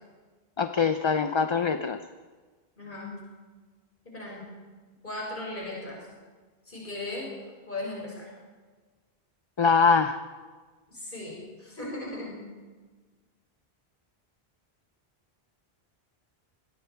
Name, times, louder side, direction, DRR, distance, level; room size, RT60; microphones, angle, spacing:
voice 1, 0.6-2.0 9.6-10.2, left 5 dB, 30° left, 9 dB, 0.6 m, -23 dB
voice 2, 2.8-3.1 4.0-4.4 5.0-6.0 6.7-7.3 7.7-8.3 10.9-12.4, left 2 dB, 55° left, -3 dB, 6.6 m, -37 dB
26.5 x 21.0 x 4.7 m, 1.4 s
omnidirectional pair, 1.1 m